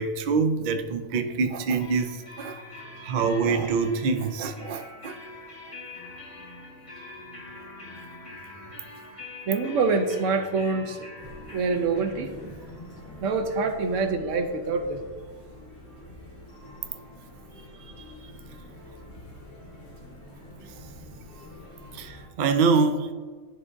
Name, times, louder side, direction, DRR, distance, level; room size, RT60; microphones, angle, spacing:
voice 1, 0.0-2.6 3.0-5.2 21.9-23.1, right 4 dB, 55° right, 7 dB, 0.5 m, -25 dB
sound 1, 1.8-15.4, left 2 dB, 25° left, 1.2 m, -45 dB
voice 2, 9.5-11.1 11.5-12.3 13.2-15.0 17.8-18.0, right 4 dB, 80° right, 6 dB, 1.1 m, -26 dB
sound 2, 11.2-22.3, left 1 dB, 85° left, 2.1 m, -46 dB
11.0 x 4.8 x 2.6 m, 1.5 s
omnidirectional pair, 1.3 m